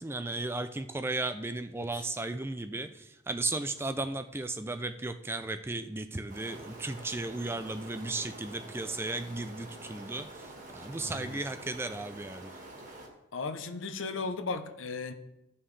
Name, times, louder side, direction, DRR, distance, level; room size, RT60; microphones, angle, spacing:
voice 1, 0.0-12.5, right 2 dB, 10° right, 9 dB, 0.3 m, -35 dB
sound 1, 6.3-13.1, right 2 dB, 40° right, 1.6 m, -47 dB
voice 2, 11.0-11.4 13.3-15.1, left 4 dB, 80° left, 8 dB, 0.7 m, -36 dB
14.0 x 5.5 x 3.3 m, 0.91 s
head